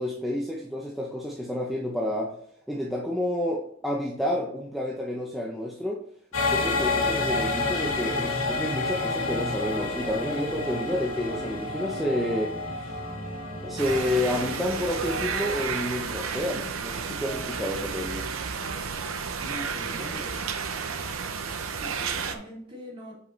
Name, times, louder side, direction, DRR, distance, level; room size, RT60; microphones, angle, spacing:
voice 1, 0.0-2.4 2.7-6.0 6.4-12.9 13.6-18.3, left 1 dB, ahead, -3 dB, 0.7 m, -30 dB
sound 1, 6.3-15.6, left 3 dB, 80° left, 2.1 m, -30 dB
sound 2, 13.8-22.3, right 6 dB, 85° right, 0.7 m, -32 dB
voice 2, 19.2-20.5 21.7-23.1, equal, 25° right, -4 dB, 2.7 m, -42 dB
7.1 x 5.3 x 3.3 m, 0.66 s
head